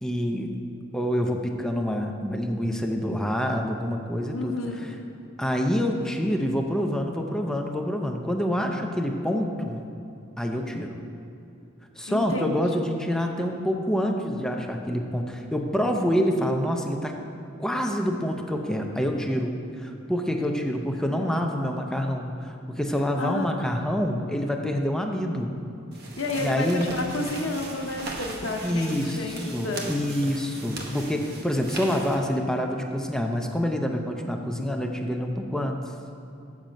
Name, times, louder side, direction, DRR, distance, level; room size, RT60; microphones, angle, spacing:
voice 1, 0.0-0.5 0.9-4.6 5.4-9.8 10.4-10.9 12.0-17.1 17.6-25.5 26.4-27.0 28.6-35.8, equal, 5° left, 2 dB, 0.5 m, -27 dB
voice 2, 4.3-4.9 12.1-12.6 21.0-21.5 23.2-23.8 26.2-29.9, left 2 dB, 90° left, 3 dB, 0.9 m, -31 dB
sound 1, 25.9-32.2, right 2 dB, 55° right, 1.0 m, -39 dB
7.4 x 6.6 x 5.1 m, 2.8 s
head